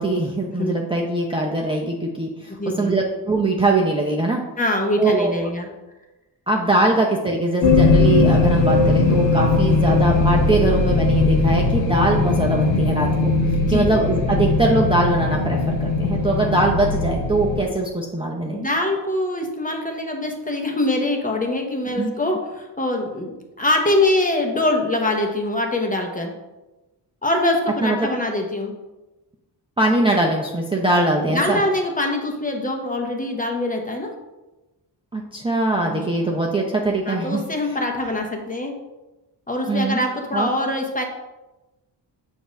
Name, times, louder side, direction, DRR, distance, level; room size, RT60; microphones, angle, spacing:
voice 1, 0.0-4.4 5.0-5.5 6.5-18.6 22.0-22.1 27.8-28.1 29.8-31.6 35.1-37.4 39.7-40.0 40.3-40.5, right 2 dB, 10° right, -1 dB, 0.6 m, -21 dB
voice 2, 2.6-3.0 4.6-5.7 13.6-13.9 18.4-23.3 23.6-26.3 27.2-28.7 31.3-34.1 35.8-36.0 37.1-38.7 39.5-41.0, left 1 dB, 20° left, 2 dB, 0.9 m, -23 dB
sound 1, 7.6-17.6, left 3 dB, 85° left, 0.8 m, -19 dB
6.8 x 2.7 x 5.1 m, 1.1 s
cardioid pair, 100°, 43 cm